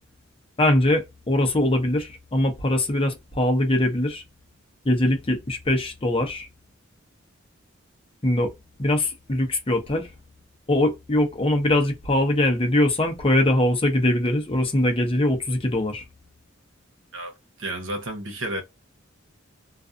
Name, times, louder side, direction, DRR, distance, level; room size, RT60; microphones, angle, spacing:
voice 1, 0.6-4.2 4.8-6.5 8.2-8.5 8.8-10.1 10.7-16.0, left 1 dB, 30° left, 0.7 m, -22 dB
voice 2, 17.1-18.6, right 1 dB, 75° right, 0.9 m, -32 dB
2.4 x 2.3 x 2.5 m
head